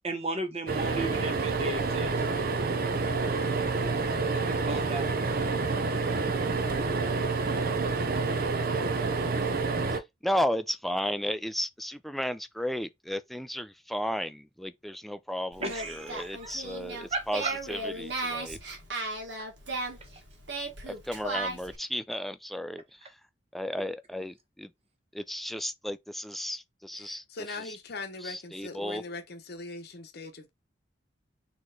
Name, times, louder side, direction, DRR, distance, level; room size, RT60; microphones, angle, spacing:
voice 1, 0.0-2.2 4.3-5.2 15.6-16.5 17.1-17.5, right 2 dB, 35° right, 1.1 m, -35 dB
sound 1, 0.7-10.0, right 4 dB, 55° right, 0.7 m, -28 dB
voice 2, 9.9-18.6 20.9-23.2 23.5-24.7 25.1-27.8 28.2-29.0, equal, ahead, 0.3 m, -34 dB
Singing, 15.5-21.8, right 2 dB, 75° right, 1.5 m, -36 dB
voice 3, 26.9-30.5, left 3 dB, 60° left, 0.8 m, -41 dB
4.2 x 3.1 x 3.7 m
head